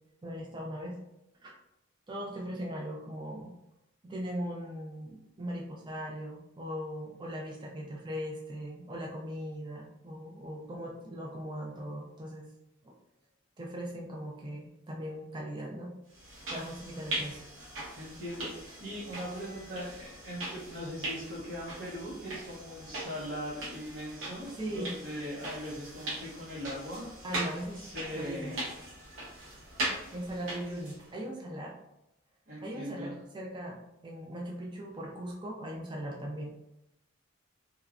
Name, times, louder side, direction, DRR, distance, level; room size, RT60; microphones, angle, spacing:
voice 1, 0.2-1.0 1.4-1.6 2.1-3.5 4.0-12.5 12.8-12.9 13.6-15.9 16.5-17.4 24.6-24.9 27.2-27.8 28.1-28.6 30.1-31.8 32.6-36.5, equal, 25° right, -2 dB, 0.4 m, -39 dB
sound 1, 16.1-31.1, right 1 dB, 85° right, 0.9 m, -40 dB
voice 2, 17.9-27.1 27.7-28.6 32.5-33.2, equal, 60° right, -9 dB, 0.8 m, -40 dB
2.9 x 2.3 x 2.4 m, 0.86 s
head